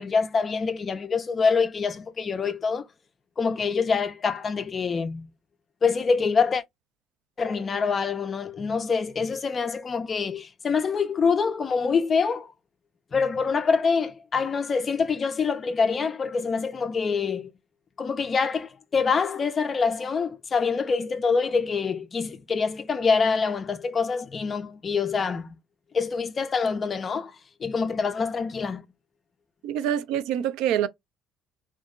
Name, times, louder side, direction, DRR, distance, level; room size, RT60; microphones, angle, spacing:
voice 1, 0.0-2.9 3.4-5.3 5.8-6.6 7.4-12.5 13.1-17.5 18.0-25.6 25.9-27.4 27.6-28.9, left 5 dB, 30° left, 0.3 m, -25 dB
voice 2, 29.6-30.9, right 10 dB, 80° right, 0.3 m, -25 dB
2.8 x 2.4 x 2.3 m
cardioid pair, 125°, 0 cm